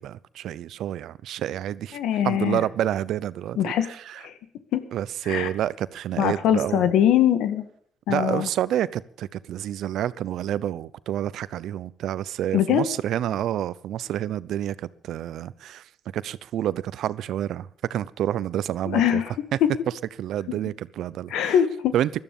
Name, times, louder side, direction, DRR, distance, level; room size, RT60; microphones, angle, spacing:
voice 1, 0.0-2.0 2.2-4.2 4.9-6.9 8.1-15.9 16.1-19.2 19.5-19.6 20.2-21.5 21.9-22.1, right 11 dB, 75° right, 0.7 m, -28 dB
voice 2, 1.9-2.6 3.6-3.9 4.2-4.3 4.7-4.8 5.3-5.5 6.2-7.6 8.1-8.5 12.5-12.8 18.9-19.3 21.3-21.9, left 10 dB, 85° left, 1.8 m, -22 dB
17.0 x 12.5 x 5.4 m
cardioid pair, 90°, 0 cm